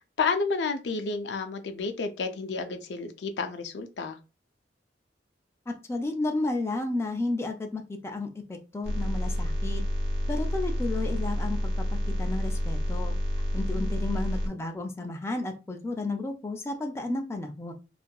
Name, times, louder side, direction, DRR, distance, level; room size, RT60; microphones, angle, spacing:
voice 1, 0.2-4.2 13.7-13.9, left 4 dB, 80° left, 0.4 m, -31 dB
voice 2, 5.7-9.8 10.3-11.7 12.2-13.1 13.5-17.7, left 2 dB, 15° left, 0.3 m, -32 dB
sound 1, 8.8-14.5, equal, 80° right, 0.8 m, -29 dB
2.7 x 2.4 x 2.2 m
head